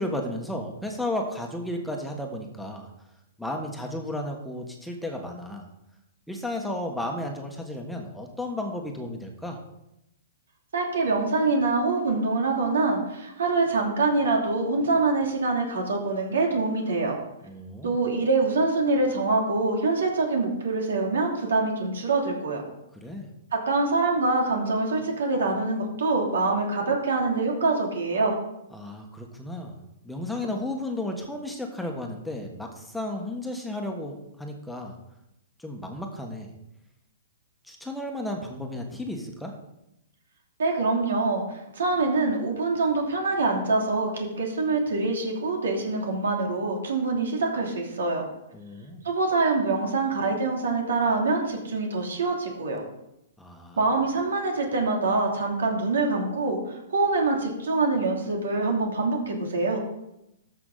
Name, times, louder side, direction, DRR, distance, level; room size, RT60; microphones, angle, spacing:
voice 1, 0.0-2.9 3.4-5.6 6.3-9.6 17.4-18.0 22.9-23.3 28.7-29.7 30.0-35.0 35.6-36.5 37.6-39.5 48.5-49.0 53.4-53.8, left 1 dB, 5° left, 1 dB, 1.4 m, -33 dB
voice 2, 10.7-17.1 17.8-22.6 23.5-28.3 40.6-48.2 49.0-52.8 53.8-59.8, right 3 dB, 80° right, 1 dB, 2.9 m, -25 dB
13.5 x 6.0 x 4.0 m, 0.85 s
hypercardioid pair, 130°, 0 cm